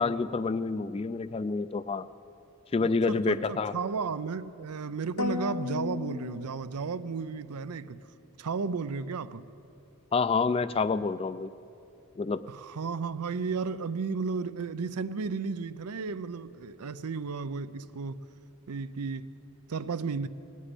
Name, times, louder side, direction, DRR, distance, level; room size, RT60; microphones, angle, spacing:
voice 1, 0.0-2.1 2.7-3.7 10.1-11.5 12.2-12.4, left 4 dB, 25° left, 0.3 m, -28 dB
voice 2, 3.1-8.0 8.4-9.5 12.5-18.2 18.7-19.3 19.7-20.3, right 5 dB, 90° right, 0.5 m, -33 dB
sound 1, 5.2-7.1, left 5 dB, 75° left, 0.9 m, -35 dB
17.0 x 8.3 x 10.0 m
head